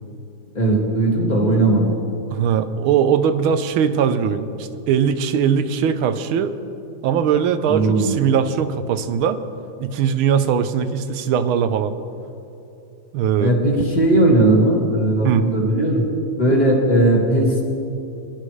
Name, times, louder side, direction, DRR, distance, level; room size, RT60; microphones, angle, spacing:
voice 1, 0.5-1.9 7.7-8.1 13.4-16.0 16.4-17.6, right 1 dB, 20° left, -2 dB, 2.1 m, -17 dB
voice 2, 2.3-6.5 7.0-9.4 9.8-11.9 13.1-13.5 15.2-15.5, right 7 dB, 85° right, 10 dB, 1.6 m, -20 dB
22.5 x 12.0 x 3.2 m, 2.8 s
omnidirectional pair, 2.2 m